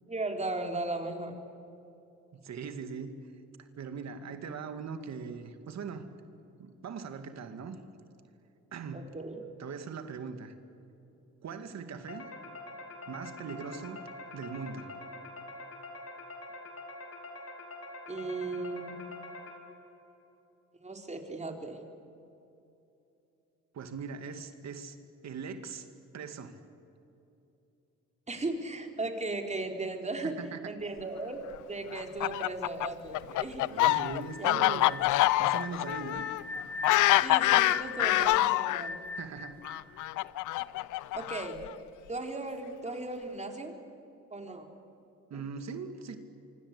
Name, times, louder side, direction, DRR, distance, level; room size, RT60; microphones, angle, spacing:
voice 1, 0.1-1.3 8.9-9.4 18.1-19.2 20.8-21.8 28.3-30.4 30.7-31.4 31.7-33.8 34.4-34.7 37.2-39.0 40.9-41.6 42.1-43.8 44.3-44.7 45.3-45.4, right 2 dB, 20° right, 3 dB, 4.0 m, -36 dB
voice 2, 2.4-3.2 3.6-6.1 6.6-7.8 8.7-9.0 9.6-10.5 11.4-12.3 13.1-14.0 14.3-14.9 23.7-25.0 25.2-25.9 26.1-26.6 30.2-30.7 33.6-35.0 35.4-36.3 38.9-39.6 45.3-46.2, right 5 dB, 60° right, 8 dB, 2.3 m, -40 dB
sound 1, 12.1-19.9, left 2 dB, 50° left, 4.9 m, -45 dB
Fowl, 31.9-38.9 39.7-41.7, left 17 dB, 80° left, 0.5 m, -26 dB
sound 2, 33.9-40.8, left 3 dB, 5° left, 2.4 m, -42 dB
25.5 x 24.5 x 8.4 m, 2.8 s
cardioid pair, 90°, 30 cm